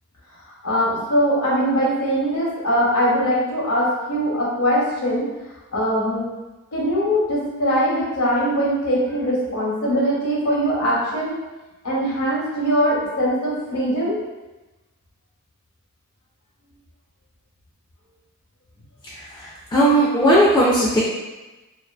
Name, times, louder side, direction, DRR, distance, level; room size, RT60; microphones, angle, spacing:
voice 1, 0.6-5.3 5.7-6.3 6.7-11.4 11.8-14.2, equal, 75° left, -5 dB, 0.7 m, -21 dB
voice 2, 19.0-21.0, right 1 dB, 15° left, -6 dB, 0.3 m, -18 dB
2.5 x 2.3 x 2.3 m, 1.1 s
head